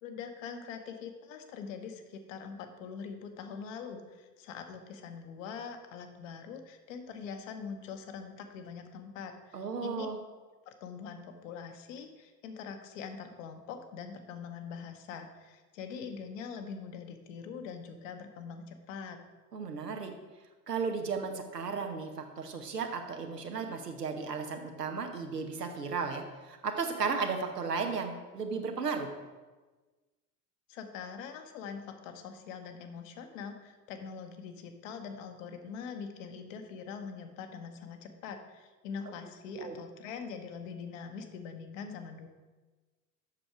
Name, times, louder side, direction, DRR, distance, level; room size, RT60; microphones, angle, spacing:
voice 1, 0.0-10.1 10.7-19.2 30.7-42.3, left 6 dB, 55° left, 6 dB, 1.1 m, -43 dB
voice 2, 9.5-10.2 19.5-20.1 20.7-29.1 39.5-39.8, right 5 dB, 80° right, 5 dB, 1.0 m, -35 dB
7.8 x 6.2 x 4.8 m, 1.3 s
figure-of-eight pair, 75°, 47 cm